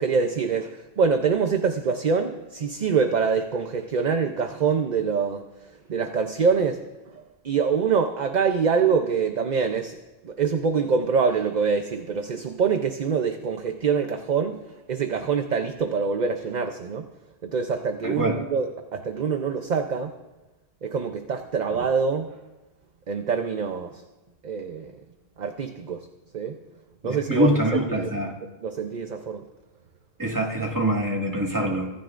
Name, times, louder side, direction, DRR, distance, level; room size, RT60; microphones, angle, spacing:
voice 1, 0.0-5.4 5.9-6.9 7.4-10.0 10.2-14.6 14.9-17.1 17.4-20.1 20.8-22.4 23.1-24.0 24.4-24.9 25.4-26.1 26.3-26.6 27.0-28.1 28.6-29.4, right 5 dB, 50° right, 6 dB, 0.8 m, -25 dB
voice 2, 18.0-18.4 27.0-28.3 30.2-31.9, right 1 dB, 20° right, -1 dB, 2.0 m, -24 dB
24.5 x 14.0 x 2.5 m, 1.1 s
omnidirectional pair, 1.1 m